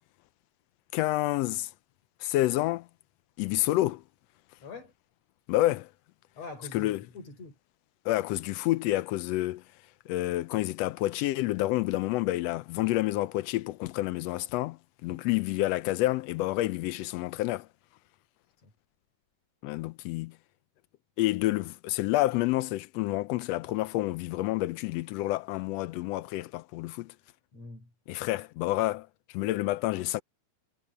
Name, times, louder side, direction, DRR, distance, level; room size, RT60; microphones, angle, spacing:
voice 1, 0.9-1.7 2.2-2.9 3.4-4.0 5.5-5.9 6.7-7.0 8.0-9.6 10.1-17.7 19.6-20.4 21.2-27.1 28.1-30.2, left 17 dB, 80° left, 1.6 m, -29 dB
voice 2, 4.6-4.9 6.4-7.6 18.6-18.7 27.5-27.9, left 4 dB, 60° left, 6.3 m, -44 dB
omnidirectional pair, 3.3 m